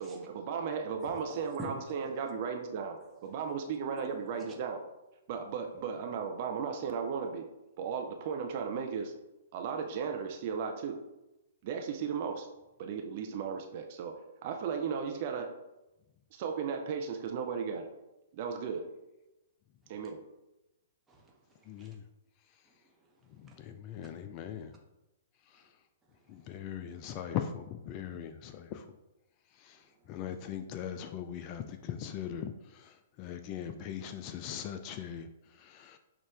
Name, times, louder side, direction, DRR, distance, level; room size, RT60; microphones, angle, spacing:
voice 1, 0.0-3.0 3.2-4.8 5.3-7.5 7.8-9.1 9.5-11.0 11.6-12.5 12.8-15.5 16.3-17.9 18.3-18.9 19.9-20.2, right 6 dB, 45° right, 4 dB, 0.5 m, -35 dB
voice 2, 1.0-1.7 3.0-3.1 21.1-22.0 22.6-23.1 23.4-23.6 24.0-24.1 29.7-30.0, right 2 dB, 15° right, -1 dB, 1.0 m, -48 dB
voice 3, 21.7-22.0 23.3-24.8 25.5-25.6 26.3-28.9 29.6-36.0, left 9 dB, 35° left, 8 dB, 0.3 m, -40 dB
6.2 x 2.4 x 3.4 m, 0.96 s
figure-of-eight pair, 115°, 0 cm